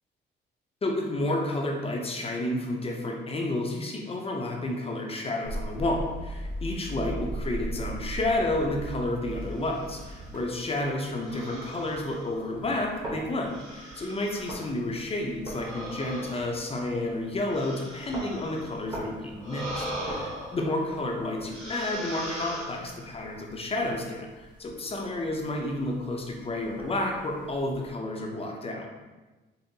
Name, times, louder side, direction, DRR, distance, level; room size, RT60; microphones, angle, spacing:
voice 1, 0.8-28.9, left 2 dB, 30° left, 0 dB, 0.6 m, -31 dB
sound 1, 5.4-10.4, right 1 dB, 50° right, 1.2 m, -36 dB
sound 2, 9.2-27.9, right 1 dB, 25° right, 1.0 m, -46 dB
sound 3, 9.6-10.3 11.2-12.8 13.5-14.7 15.4-18.8 19.4-21.1 21.5-23.2, right 1 dB, 80° right, 1.3 m, -40 dB
5.2 x 2.0 x 2.7 m, 1.2 s
cardioid pair, 90°, 20 cm